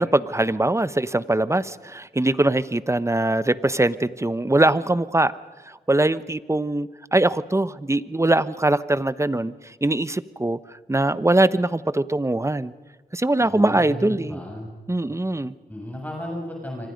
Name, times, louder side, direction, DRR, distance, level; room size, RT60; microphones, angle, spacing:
voice 1, 0.0-5.3 5.7-10.6 10.9-12.7 13.1-14.4 14.9-15.5, right 2 dB, 15° right, 15 dB, 1.0 m, -22 dB
voice 2, 13.5-14.7 15.1-15.2 15.7-16.9, left 1 dB, 10° left, -1 dB, 7.3 m, -34 dB
27.5 x 25.5 x 5.3 m, 1.3 s
cardioid pair, 70°, 17 cm